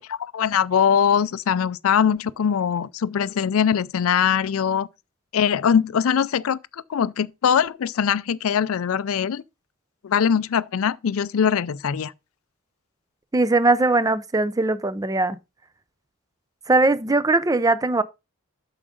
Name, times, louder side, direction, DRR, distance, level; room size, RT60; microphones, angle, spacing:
voice 1, 0.2-4.9 5.3-6.6 6.9-9.4 10.0-12.1, left 7 dB, 75° left, 0.4 m, -22 dB
voice 2, 13.3-15.4 16.7-18.0, right 2 dB, 15° right, 0.5 m, -20 dB
8.6 x 6.4 x 3.7 m
head